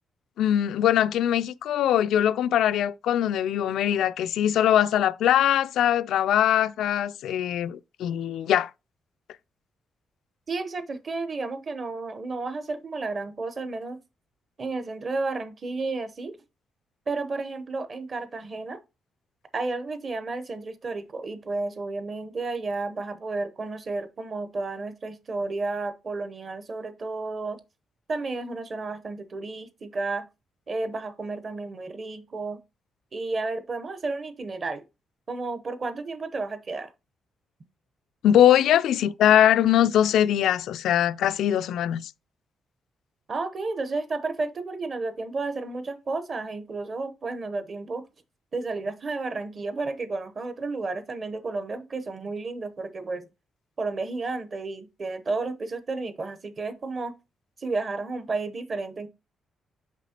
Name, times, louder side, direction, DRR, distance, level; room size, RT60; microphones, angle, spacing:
voice 1, 0.4-8.7 38.2-42.1, left 11 dB, 85° left, 0.3 m, -22 dB
voice 2, 10.5-14.0 14.6-16.3 17.1-18.8 19.5-27.6 28.1-30.3 30.7-32.6 33.1-34.8 35.3-36.9 43.3-48.0 48.5-53.3 53.8-57.1 57.6-59.1, right 3 dB, 30° right, 0.8 m, -32 dB
6.0 x 5.7 x 2.8 m
cardioid pair, 175°, 0 cm